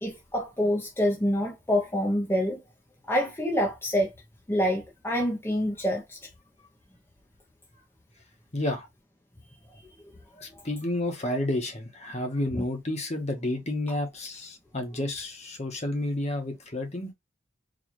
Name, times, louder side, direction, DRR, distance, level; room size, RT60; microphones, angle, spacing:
voice 1, 0.0-2.6 3.1-4.1 4.5-6.2 12.5-12.6, equal, 10° left, 0.6 m, -26 dB
voice 2, 8.5-8.9 10.4-17.1, left 1 dB, 35° left, 1.0 m, -30 dB
4.1 x 2.4 x 3.1 m
head